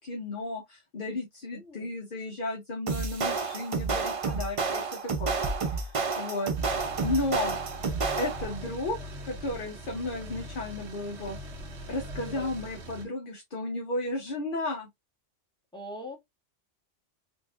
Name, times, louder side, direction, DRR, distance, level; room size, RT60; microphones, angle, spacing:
voice 1, 0.0-5.4 5.6-6.5 7.0-7.6 8.2-9.0 9.2-11.4 11.9-14.9, left 2 dB, 50° left, 1.0 m, -33 dB
voice 2, 1.4-1.9 12.1-12.5 15.7-16.2, equal, 5° left, 1.2 m, -42 dB
sound 1, 2.9-8.6, right 4 dB, 40° right, 0.5 m, -30 dB
sound 2, 6.5-13.0, equal, 65° right, 1.2 m, -41 dB
4.4 x 2.5 x 2.4 m
omnidirectional pair, 1.2 m